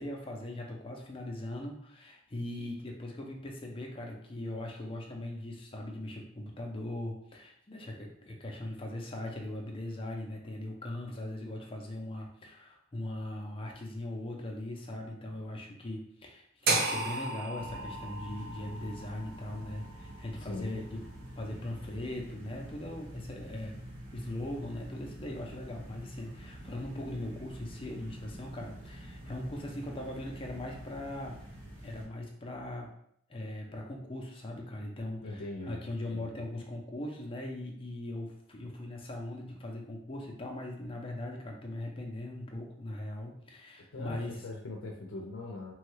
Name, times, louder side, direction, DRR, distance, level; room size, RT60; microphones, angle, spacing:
voice 1, 0.0-21.0 21.4-23.8 24.1-31.5 31.8-32.9 33.3-44.4, left 1 dB, 25° left, 0 dB, 0.5 m, -40 dB
sound 1, 16.7-20.8, right 3 dB, 50° right, 0.5 m, -34 dB
sound 2, 17.5-32.1, right 1 dB, 65° right, 1.0 m, -47 dB
voice 2, 20.5-20.8 35.2-35.8 36.1-36.4 43.9-45.7, left 2 dB, 90° left, -1 dB, 0.5 m, -41 dB
3.0 x 2.3 x 3.2 m, 0.69 s
head